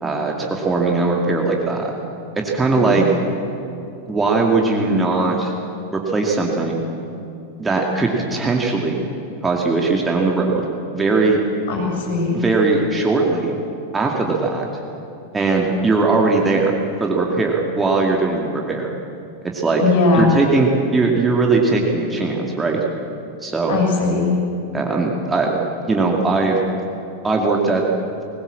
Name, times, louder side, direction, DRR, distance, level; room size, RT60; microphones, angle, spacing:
voice 1, 0.0-1.9 2.3-3.0 4.1-5.5 5.9-6.8 7.6-9.1 9.4-10.7 10.9-11.4 12.3-13.5 13.9-14.7 15.3-16.7 17.0-18.9 19.5-19.8 20.1-22.8 23.4-23.8 24.7-26.6 27.2-27.8, right 3 dB, 15° right, 0 dB, 2.4 m, -19 dB
voice 2, 2.8-3.1 11.7-12.4 19.8-20.3 23.7-24.4, left 4 dB, 55° left, -1 dB, 7.5 m, -19 dB
21.0 x 19.5 x 7.5 m, 2.7 s
figure-of-eight pair, 90°, 0 cm